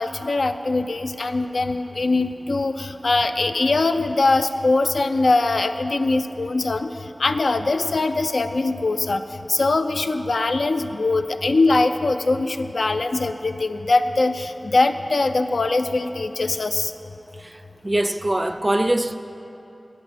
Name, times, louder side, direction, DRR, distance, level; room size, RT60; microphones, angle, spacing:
voice 1, 0.0-9.2 9.5-16.9, left 3 dB, 90° left, 0.4 m, -22 dB
voice 2, 17.8-19.2, right 1 dB, 30° right, 0.4 m, -22 dB
8.1 x 8.0 x 6.9 m
wide cardioid pair, 65°, 0 cm